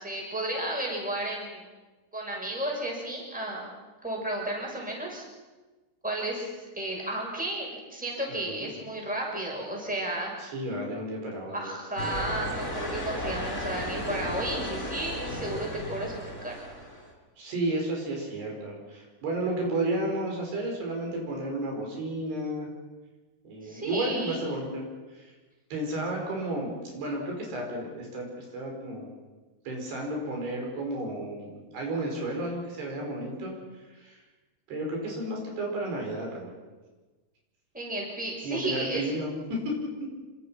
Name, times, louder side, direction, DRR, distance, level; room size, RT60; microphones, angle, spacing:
voice 1, 0.0-1.6 2.1-3.7 4.0-5.2 6.0-10.3 11.5-16.6 23.6-24.4 37.7-39.0, right 1 dB, ahead, -2 dB, 6.2 m, -33 dB
voice 2, 10.4-11.7 17.4-22.7 23.5-24.8 25.2-25.3 25.7-29.1 29.7-33.5 34.0-34.2 34.7-36.5 38.4-39.7, right 1 dB, 75° right, 0 dB, 7.1 m, -32 dB
sound 1, 12.0-17.1, left 1 dB, 15° left, 5.7 m, -34 dB
27.5 x 25.5 x 5.8 m, 1.2 s
omnidirectional pair, 4.7 m